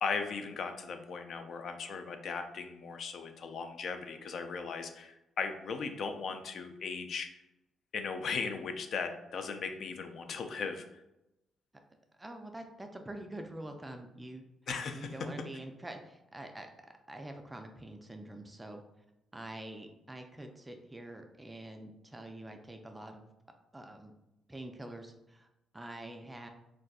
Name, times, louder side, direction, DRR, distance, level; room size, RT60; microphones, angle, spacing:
voice 1, 0.0-7.3 7.9-10.8 14.7-15.3, left 5 dB, 60° left, 7 dB, 0.4 m, -37 dB
voice 2, 12.2-14.4 14.9-16.7 17.1-18.8 19.3-23.3 23.7-24.1 24.5-25.5 25.7-26.5, right 1 dB, 15° right, 4 dB, 0.4 m, -45 dB
3.4 x 2.5 x 2.3 m, 0.89 s
cardioid pair, 90°, 0 cm